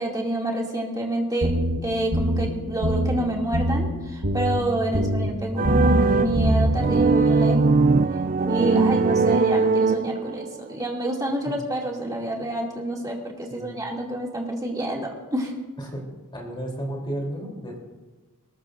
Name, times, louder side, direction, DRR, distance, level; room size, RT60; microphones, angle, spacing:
voice 1, 0.0-1.5 1.8-7.7 8.4-15.5, right 1 dB, 15° right, -1 dB, 2.6 m, -28 dB
sound 1, 1.4-1.8 2.1-2.5 2.8-3.2 3.5-3.9 4.2-4.6 4.9-5.3 5.6-6.0 6.3-6.7, equal, 65° right, 4.5 m, -22 dB
voice 2, 4.9-5.3 11.4-11.6 13.5-13.8 15.8-16.0 16.3-17.8, right 1 dB, 20° left, 0 dB, 3.4 m, -33 dB
sound 2, 5.6-10.5, right 4 dB, 40° right, 0.4 m, -21 dB
21.5 x 19.5 x 2.6 m, 1.2 s
head